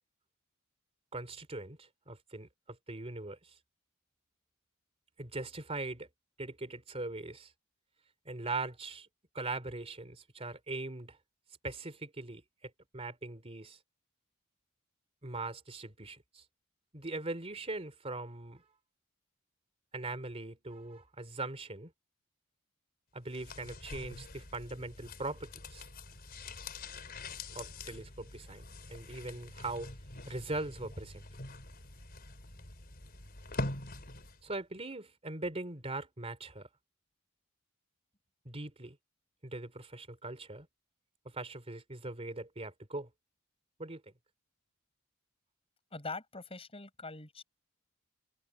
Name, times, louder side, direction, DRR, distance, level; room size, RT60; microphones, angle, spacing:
voice 1, 1.1-3.6 5.2-6.1 6.4-7.5 8.2-9.1 9.3-11.2 11.6-13.8 15.2-16.4 16.9-18.6 19.9-21.9 23.1-25.9 27.5-29.9 30.3-31.2 34.4-36.7 38.4-39.0 39.4-40.7 41.2-43.1 43.8-44.0, right 2 dB, 30° right, 2.9 m, -41 dB
sound 1, 23.3-34.5 34.8-34.9, left 2 dB, 45° left, 4.6 m, -44 dB
voice 2, 45.9-47.4, left 3 dB, 25° left, 6.0 m, -43 dB
head